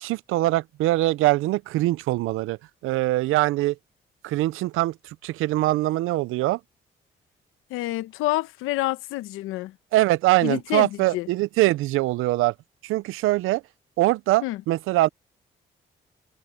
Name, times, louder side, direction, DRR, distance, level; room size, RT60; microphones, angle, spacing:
voice 1, 0.0-2.6 2.8-3.7 4.2-4.9 5.2-6.6 9.9-12.5 12.8-13.6 14.0-15.1, right 17 dB, 85° right, 0.6 m, -22 dB
voice 2, 7.7-9.7 10.4-11.3 14.4-14.6, left 17 dB, 90° left, 1.0 m, -28 dB
supercardioid pair, 55°, 21 cm